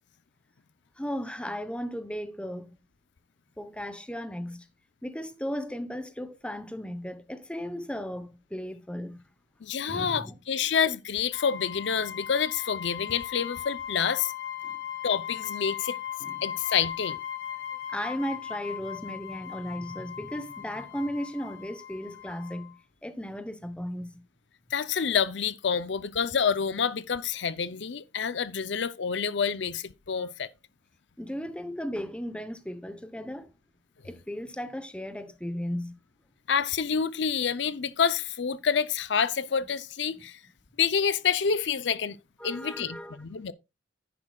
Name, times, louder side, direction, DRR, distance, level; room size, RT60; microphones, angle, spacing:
voice 1, 1.0-2.8 3.6-4.7 5.0-9.2 9.9-10.3 14.6-14.8 16.2-16.4 17.9-22.7 23.0-24.2 31.2-33.5 34.0-35.9 40.1-40.3 42.4-43.2, equal, 5° left, 0.9 m, -36 dB
voice 2, 9.6-14.3 15.0-16.0 16.4-17.2 24.7-30.5 36.5-40.4 40.8-42.2 42.4-43.5, left 6 dB, 65° left, 0.6 m, -28 dB
sound 1, 11.3-22.8, left 10 dB, 80° left, 4.1 m, -38 dB
10.5 x 9.7 x 2.3 m
head